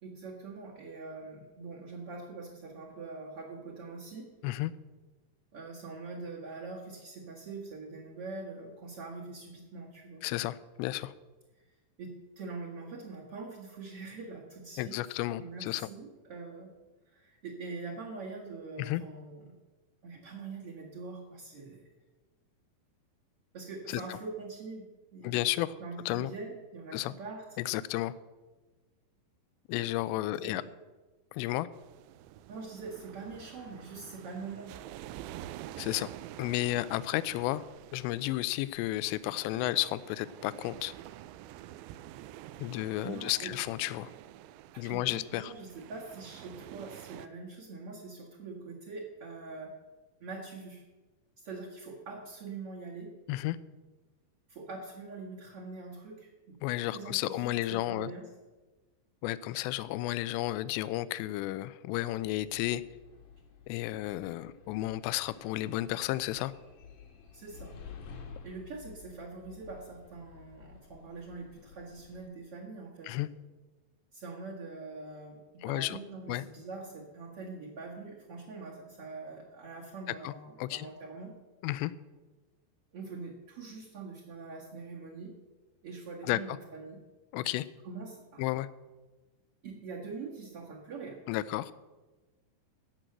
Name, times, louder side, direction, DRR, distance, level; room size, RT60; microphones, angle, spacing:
voice 1, 0.0-4.3 5.5-10.2 11.5-11.6 12.0-15.0 15.4-16.7 17.1-19.5 20.0-21.9 23.5-25.4 25.8-27.4 30.4-30.7 32.5-34.9 42.7-43.5 44.7-49.7 50.2-50.8 51.4-53.1 54.5-56.6 56.9-58.3 67.3-67.8 68.4-73.1 74.1-81.3 82.9-85.3 85.8-87.0 87.8-88.5 89.6-91.2, right 3 dB, 50° right, -5 dB, 1.8 m, -44 dB
voice 2, 10.2-11.1 14.8-15.9 18.8-19.0 23.9-24.0 25.2-25.8 26.1-26.3 26.9-27.1 27.6-28.1 29.7-30.6 31.3-31.7 35.8-36.1 36.4-37.6 37.9-40.9 42.6-44.1 44.8-45.5 53.3-53.6 56.6-58.1 59.2-62.8 63.7-66.5 73.0-73.3 75.6-76.0 76.3-76.4 80.2-80.3 80.6-80.9 81.6-81.9 86.2-86.6 87.3-87.7 88.4-88.7 91.3-91.7, left 16 dB, 85° left, 17 dB, 2.7 m, -32 dB
sound 1, 31.7-47.3, right 13 dB, 85° right, 2.8 m, -48 dB
sound 2, 62.2-72.3, left 6 dB, 60° left, 2.4 m, -52 dB
15.0 x 6.2 x 8.0 m, 1.2 s
omnidirectional pair, 5.1 m